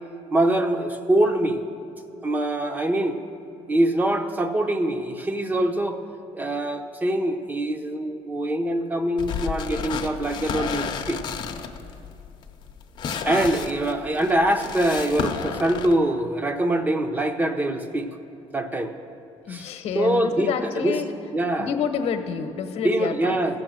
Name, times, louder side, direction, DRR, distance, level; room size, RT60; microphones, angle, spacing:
voice 1, 0.3-1.6 2.2-3.2 3.7-6.0 6.3-11.2 13.2-18.1 18.5-18.9 19.5-19.7 19.9-20.5 20.8-21.0 21.3-21.7 22.8-23.6, right 1 dB, 15° right, 7 dB, 0.7 m, -24 dB
sound 1, 9.2-15.9, left 6 dB, 45° left, 0.8 m, -32 dB
voice 2, 19.4-21.1 21.6-23.6, left 7 dB, 65° left, 7 dB, 1.0 m, -28 dB
15.5 x 6.6 x 7.5 m, 2.7 s
cardioid pair, 150°, 11 cm